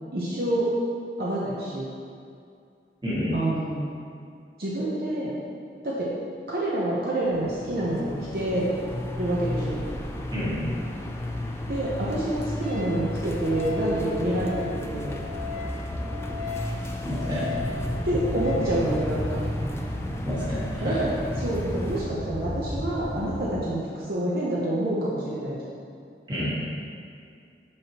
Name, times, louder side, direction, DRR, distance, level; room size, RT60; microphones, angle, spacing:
voice 1, 0.1-0.7 1.2-1.9 3.3-3.9 4.6-5.4 5.8-6.1 6.5-8.7 9.2-9.8 11.7-15.2 18.0-19.4 20.8-25.6, right 1 dB, 55° right, -6 dB, 0.8 m, -27 dB
voice 2, 3.0-3.4 10.3-10.6 17.0-17.4 20.2-21.0 26.3-26.5, equal, 25° right, -8 dB, 1.5 m, -29 dB
sound 1, 7.2-22.0, left 1 dB, 15° left, 0.3 m, -33 dB
Wind instrument woodwind instrument, 12.6-18.8, left 5 dB, 5° right, 1.5 m, -38 dB
sound 2, 17.5-23.5, equal, 75° right, 1.3 m, -33 dB
6.4 x 5.7 x 3.0 m, 2.4 s
head